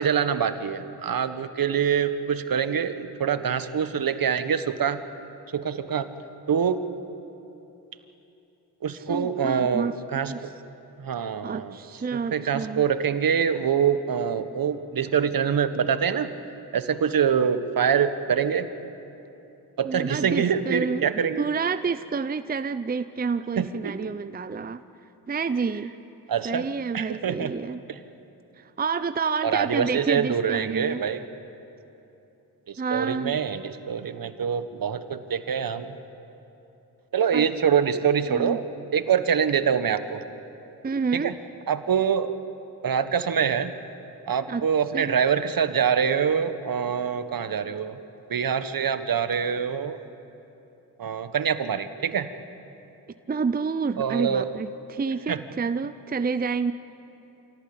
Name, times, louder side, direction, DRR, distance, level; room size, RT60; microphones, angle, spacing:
voice 1, 0.0-5.0 5.5-6.1 6.5-6.8 8.8-10.3 11.0-11.8 12.1-16.3 16.7-18.7 19.8-21.4 23.6-24.0 26.3-27.5 27.9-28.0 29.4-31.2 32.7-36.0 37.1-38.6 38.9-40.2 41.1-41.3 41.7-42.3 42.8-43.7 44.3-48.0 48.3-50.0 51.0-52.3 54.0-54.5 55.3-55.4, right 7 dB, 55° right, 11 dB, 1.4 m, -25 dB
voice 2, 8.9-10.4 11.4-12.9 19.8-24.8 25.3-25.9 26.4-27.8 28.6-31.0 32.8-33.4 37.3-37.5 38.3-38.6 40.8-41.3 44.5-44.6 44.9-45.2 53.3-56.7, right 5 dB, 20° right, 12 dB, 0.7 m, -29 dB
27.0 x 17.0 x 8.8 m, 3.0 s
supercardioid pair, 55°, 42 cm